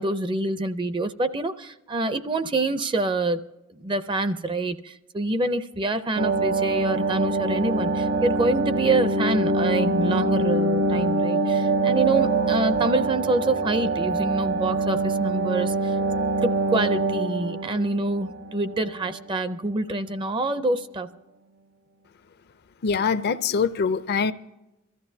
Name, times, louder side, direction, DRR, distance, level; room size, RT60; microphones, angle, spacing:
voice 1, 0.0-3.4 3.7-15.9 16.4-21.1, right 2 dB, 25° right, 0.5 m, -26 dB
sound 1, 6.2-19.2 19.5-19.6, right 3 dB, 55° right, 0.9 m, -24 dB
voice 2, 22.8-24.3, left 5 dB, 50° left, 0.5 m, -23 dB
23.0 x 14.0 x 2.7 m
head